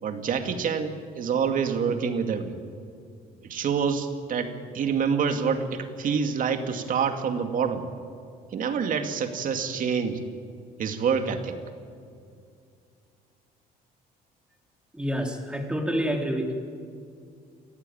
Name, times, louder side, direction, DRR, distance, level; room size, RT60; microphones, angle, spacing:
voice 1, 0.0-2.6 3.4-7.9 8.5-10.2 10.8-11.6, right 6 dB, 55° right, 6 dB, 2.4 m, -27 dB
voice 2, 14.9-16.5, equal, 5° right, 2 dB, 3.5 m, -28 dB
29.0 x 14.5 x 9.3 m, 2.3 s
cardioid pair, 110°, 17 cm